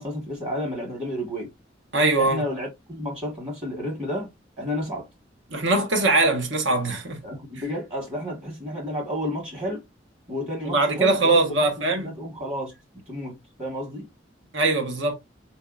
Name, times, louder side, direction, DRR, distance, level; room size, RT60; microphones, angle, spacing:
voice 1, 0.0-1.5 2.2-4.3 4.6-5.1 7.2-9.8 10.3-11.7 12.0-12.7 13.1-14.1, equal, 30° right, 1.3 m, -31 dB
voice 2, 1.9-2.4 5.5-7.2 10.6-12.1 14.5-15.1, right 2 dB, 80° right, 1.1 m, -21 dB
4.2 x 2.7 x 2.3 m
head